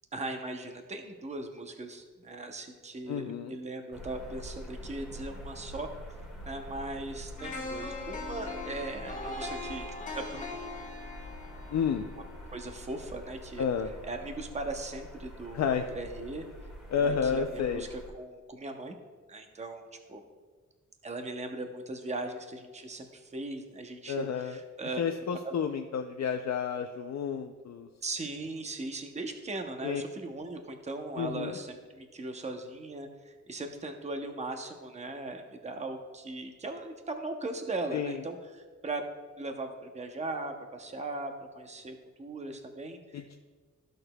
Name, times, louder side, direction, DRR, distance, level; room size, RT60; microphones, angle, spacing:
voice 1, 0.1-5.9 6.4-9.9 10.2-10.7 12.5-13.7 14.0-16.4 16.9-19.0 19.3-20.2 21.0-25.6 28.0-39.1 39.4-43.4, right 2 dB, 20° right, 5 dB, 0.6 m, -39 dB
voice 2, 3.1-3.5 11.7-12.0 13.6-13.9 15.5-15.8 16.9-17.8 24.1-24.6 25.0-27.9 29.8-30.0 31.2-31.6 37.9-38.1 43.1-43.4, left 7 dB, 60° left, 5 dB, 0.4 m, -30 dB
sound 1, 3.9-18.1, equal, ahead, 1.8 m, -45 dB
sound 2, 7.4-13.4 13.8-13.9, left 2 dB, 25° left, 1.5 m, -41 dB
14.0 x 6.4 x 2.2 m, 1.5 s
wide cardioid pair, 170°, 31 cm